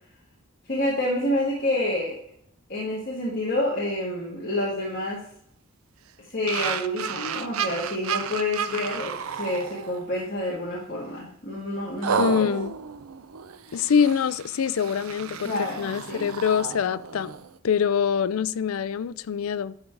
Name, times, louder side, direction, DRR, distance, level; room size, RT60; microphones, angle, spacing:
voice 1, 0.7-2.2 2.7-5.2 6.3-12.5 15.4-16.3, left 1 dB, 45° left, 1.9 m, -28 dB
sound 1, 6.5-10.3 10.8-11.0 12.0-17.6, right 7 dB, 85° right, 0.6 m, -32 dB
voice 2, 12.2-12.7 13.7-17.3 17.6-19.8, left 7 dB, 85° left, 0.4 m, -24 dB
11.0 x 3.8 x 4.6 m
head